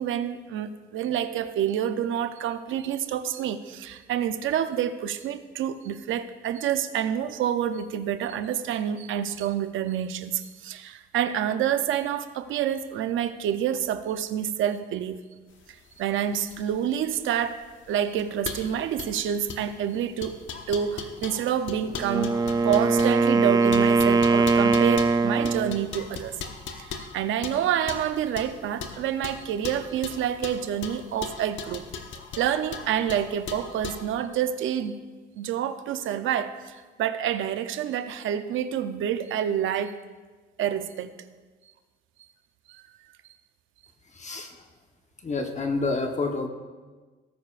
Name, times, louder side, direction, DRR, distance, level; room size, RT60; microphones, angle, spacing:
voice 1, 0.0-15.2 16.0-17.6 17.9-20.4 20.7-26.4 26.8-31.9 32.4-35.0 35.4-40.0 40.6-41.1 42.7-42.8, right 9 dB, 80° right, 10 dB, 0.7 m, -28 dB
sound 1, 15.6-34.0, left 6 dB, 70° left, 1.1 m, -39 dB
Wind instrument woodwind instrument, 21.9-25.8, right 3 dB, 20° right, 0.5 m, -21 dB
voice 2, 44.1-44.5 45.2-46.5, left 3 dB, 35° left, 4 dB, 1.2 m, -28 dB
18.0 x 9.4 x 2.5 m, 1.3 s
cardioid pair, 90°, 20 cm